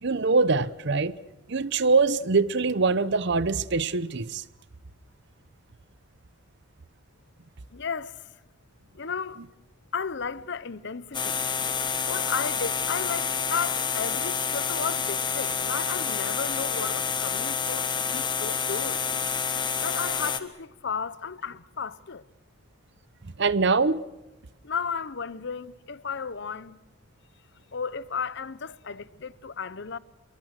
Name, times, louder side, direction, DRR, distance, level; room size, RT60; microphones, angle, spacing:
voice 1, 0.0-1.2 1.5-4.4 23.4-24.0, right 4 dB, 55° right, 0.8 m, -23 dB
voice 2, 7.7-8.3 8.9-9.4 9.9-11.5 12.1-19.0 19.8-22.3 24.6-26.8 27.7-30.0, left 5 dB, 60° left, 0.8 m, -34 dB
sound 1, 11.1-20.4, left 6 dB, 25° left, 1.4 m, -28 dB
26.5 x 23.0 x 6.6 m
head